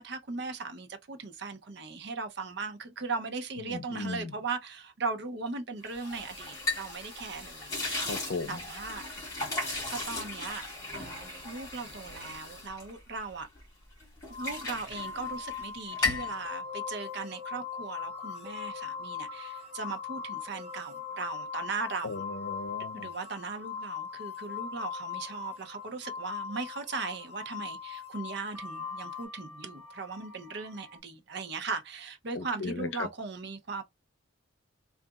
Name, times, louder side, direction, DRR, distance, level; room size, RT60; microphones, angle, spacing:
voice 1, 0.0-8.1 8.5-9.0 9.9-10.7 10.9-13.5 14.3-22.2 22.9-33.8, right 4 dB, 55° right, 0.7 m, -38 dB
voice 2, 3.6-4.3 8.1-8.6 22.0-23.1 32.4-32.9, left 3 dB, 70° left, 0.6 m, -37 dB
sound 1, 5.9-13.6 14.0-15.7 15.9-16.3, left 3 dB, 15° left, 2.4 m, -36 dB
sound 2, 14.3-29.2, left 7 dB, 30° right, 1.2 m, -40 dB
sound 3, 15.9-27.7 28.4-31.0, left 3 dB, 10° right, 1.1 m, -49 dB
3.8 x 2.5 x 2.3 m
head